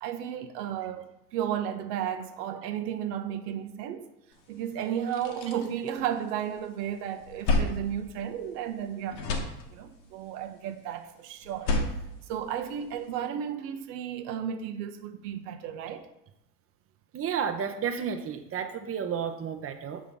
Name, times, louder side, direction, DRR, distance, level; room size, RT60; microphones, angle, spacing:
voice 1, 0.0-4.1 4.5-9.4 9.7-11.7 12.3-16.1, right 9 dB, 70° right, 0.8 m, -33 dB
sound 1, 4.5-4.6 4.9-6.6 7.0-8.8 9.1-10.1 11.4-13.1, left 2 dB, 80° left, 1.3 m, -32 dB
voice 2, 17.1-20.0, right 7 dB, 25° right, 0.8 m, -31 dB
6.8 x 3.7 x 5.3 m
hypercardioid pair, 75°, 50 cm